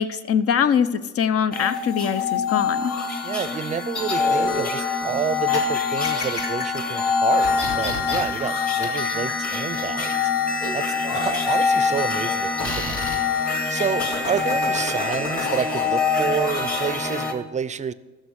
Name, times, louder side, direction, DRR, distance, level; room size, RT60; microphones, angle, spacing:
voice 1, 0.0-2.9, left 7 dB, 50° left, 13 dB, 0.8 m, -22 dB
sound 1, 1.5-17.3, left 5 dB, 30° left, 1.6 m, -25 dB
voice 2, 3.2-10.3 10.7-10.8 11.3-13.0 13.7-17.9, right 7 dB, 25° right, 15 dB, 0.5 m, -29 dB
sound 2, 3.9-5.6 5.9-6.8 7.4-8.2 8.5-10.1 10.6-12.3 12.6-13.2 14.0-15.8, left 2 dB, 85° left, 3.4 m, -31 dB
14.0 x 6.5 x 6.3 m, 1.3 s
cardioid pair, 100°, 30 cm